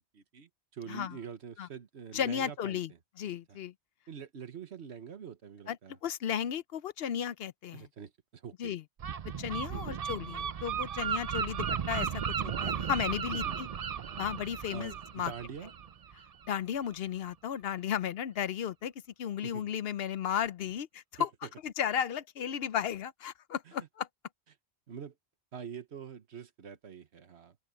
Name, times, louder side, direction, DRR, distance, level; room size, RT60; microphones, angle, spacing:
voice 1, 0.1-2.8 3.5-3.6 4.1-6.0 7.7-8.8 9.7-9.9 13.3-13.6 14.7-15.7 19.4-19.7 21.2-21.5 23.7-23.9 24.9-25.1 25.5-27.6, right 7 dB, 85° right, 1.4 m, -45 dB
voice 2, 2.1-2.9 3.2-3.7 5.7-5.8 6.0-7.9 8.6-8.8 9.4-13.7 14.2-15.3 16.5-18.9 19.2-21.3 21.6-24.1, left 9 dB, 70° left, 0.8 m, -34 dB
Gull seagull, 9.0-16.5, right 7 dB, 45° right, 0.5 m, -35 dB
open air
omnidirectional pair, 1.1 m